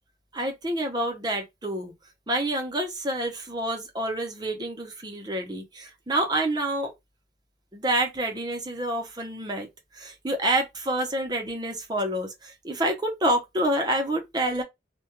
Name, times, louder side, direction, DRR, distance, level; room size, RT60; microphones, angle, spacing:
voice 1, 0.3-1.9 2.3-6.9 7.7-9.7 9.9-14.6, right 1 dB, 25° right, 0.6 m, -28 dB
2.3 x 2.2 x 2.9 m
head